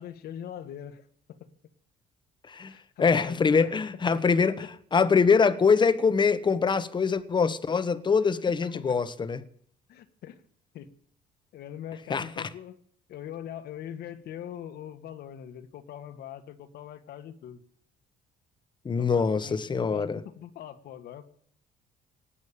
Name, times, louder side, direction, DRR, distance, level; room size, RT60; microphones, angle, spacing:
voice 1, 0.0-1.5 2.7-3.7 4.1-4.2 4.6-4.7 8.6-9.0 9.9-10.4 10.7-10.9 11.5-12.8 13.1-17.6 19.0-21.3, left 10 dB, 70° left, 1.8 m, -42 dB
voice 2, 3.0-9.4 12.1-12.5 18.8-20.2, left 5 dB, 25° left, 1.2 m, -24 dB
19.0 x 8.5 x 8.6 m
cardioid pair, 110°, 17 cm